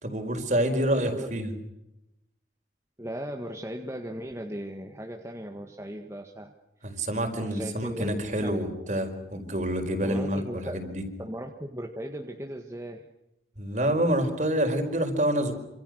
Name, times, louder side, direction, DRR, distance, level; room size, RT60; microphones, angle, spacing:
voice 1, 0.0-1.5 6.8-11.0 13.6-15.5, right 1 dB, 45° right, 6 dB, 4.8 m, -27 dB
voice 2, 3.0-6.5 6.9-7.1 7.4-8.5 10.0-10.8 11.2-13.1, equal, 15° right, 3 dB, 1.7 m, -37 dB
27.5 x 27.0 x 6.5 m, 0.88 s
head